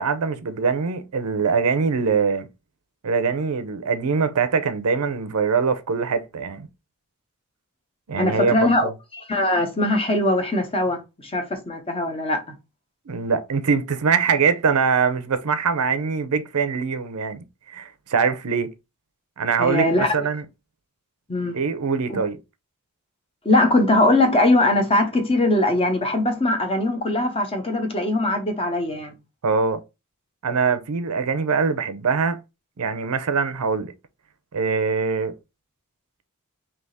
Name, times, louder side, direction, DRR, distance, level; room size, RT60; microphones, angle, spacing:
voice 1, 0.0-2.5 3.0-6.7 8.1-8.9 13.1-18.7 19.4-20.4 21.5-22.4 29.4-29.8 30.4-32.4 32.8-33.9 34.5-35.3, right 5 dB, 85° right, 0.6 m, -23 dB
voice 2, 8.2-12.5 19.6-20.1 21.3-21.6 22.1-22.2 23.4-29.1, left 1 dB, 25° left, 0.9 m, -21 dB
3.5 x 2.8 x 4.0 m
head